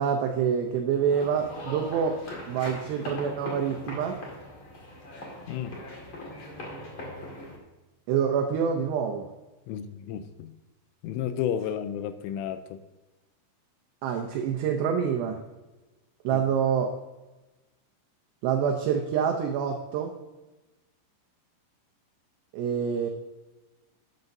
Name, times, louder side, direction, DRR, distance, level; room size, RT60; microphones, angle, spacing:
voice 1, 0.0-2.2 2.5-4.2 8.1-9.3 14.0-15.4 16.2-16.9 18.4-20.2 22.5-23.1, right 7 dB, 85° right, 3 dB, 2.4 m, -26 dB
sound 1, 1.1-7.6, left 1 dB, 60° left, 1.3 m, -40 dB
voice 2, 9.7-10.5 11.0-12.8 16.3-16.4, left 9 dB, 85° left, 10 dB, 3.0 m, -32 dB
12.0 x 9.6 x 2.7 m, 1.1 s
omnidirectional pair, 5.8 m